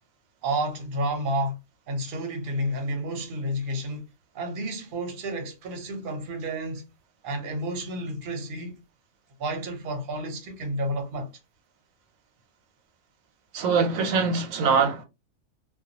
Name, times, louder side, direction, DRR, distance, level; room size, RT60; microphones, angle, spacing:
voice 1, 0.4-1.6 1.9-4.1 4.3-6.8 7.2-8.8 9.4-11.3, right 1 dB, 50° right, 0.8 m, -30 dB
voice 2, 13.5-15.0, right 5 dB, 85° right, 1.1 m, -23 dB
2.3 x 2.2 x 2.7 m
omnidirectional pair, 1.4 m